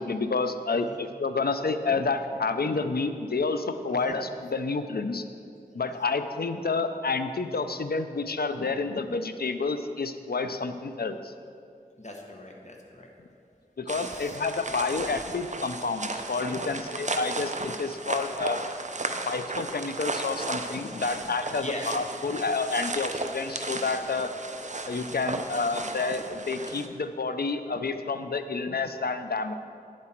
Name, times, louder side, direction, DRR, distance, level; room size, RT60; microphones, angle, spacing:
voice 1, 0.0-5.2 5.7-11.3 13.8-18.7 19.3-24.3 24.9-29.5, left 4 dB, 80° left, 9 dB, 0.5 m, -29 dB
voice 2, 12.0-13.1 14.0-14.4 21.5-21.9, left 1 dB, 45° left, 0 dB, 1.3 m, -41 dB
sound 1, 13.9-26.9, right 3 dB, 50° right, 0.6 m, -35 dB
9.9 x 7.5 x 4.4 m, 2.5 s
wide cardioid pair, 40°, 16 cm